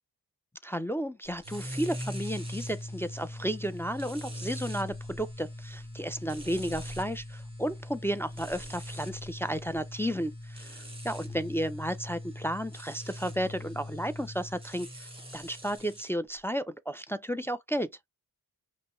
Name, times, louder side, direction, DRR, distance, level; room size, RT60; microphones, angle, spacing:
voice 1, 0.6-17.9, equal, 5° left, 0.3 m, -33 dB
sound 1, 1.4-16.1, left 1 dB, 15° right, 1.6 m, -41 dB
5.3 x 2.0 x 3.0 m
cardioid pair, 65°, 41 cm